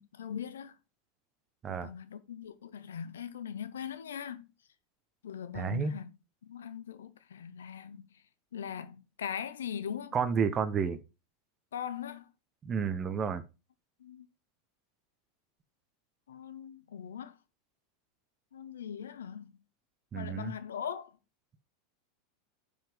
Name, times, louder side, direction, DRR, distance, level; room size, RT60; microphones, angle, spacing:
voice 1, 0.2-0.7 1.7-4.5 5.2-6.1 6.4-8.1 8.5-10.2 11.7-12.3 14.0-14.3 16.3-17.3 18.5-19.5 20.1-21.1, left 8 dB, 85° left, 0.7 m, -40 dB
voice 2, 5.5-5.9 10.1-11.0 12.6-13.4 20.1-20.5, right 6 dB, 30° right, 0.9 m, -31 dB
5.8 x 5.2 x 5.1 m
hypercardioid pair, 100°, 0 cm